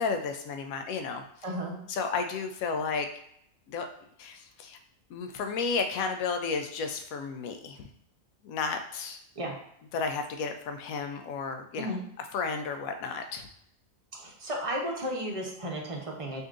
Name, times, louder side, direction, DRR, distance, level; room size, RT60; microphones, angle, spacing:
voice 1, 0.0-1.2 1.9-3.1 3.7-3.9 4.2-4.8 5.1-7.9 8.4-9.2 9.9-12.0 12.3-13.5, left 5 dB, 90° left, 5 dB, 1.0 m, -32 dB
voice 2, 1.4-1.8 9.4-9.5 11.8-12.0 14.2-16.4, equal, 35° right, -1 dB, 0.6 m, -34 dB
5.3 x 2.6 x 2.5 m, 0.71 s
omnidirectional pair, 1.4 m